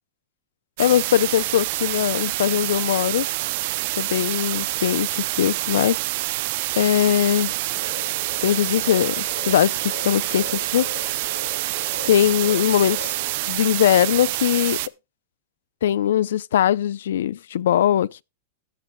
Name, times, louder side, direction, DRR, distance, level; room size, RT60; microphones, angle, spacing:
voice 1, 0.8-3.3 4.0-6.0 6.8-7.5 8.4-10.9 12.1-13.2 13.5-14.8 15.8-18.2, left 11 dB, 85° left, 0.5 m, -21 dB
sound 1, 0.8-14.9, right 19 dB, 45° right, 0.5 m, -27 dB
sound 2, 7.7-13.3, left 2 dB, 30° left, 5.0 m, -39 dB
16.0 x 11.5 x 2.3 m
supercardioid pair, 175°, 0 cm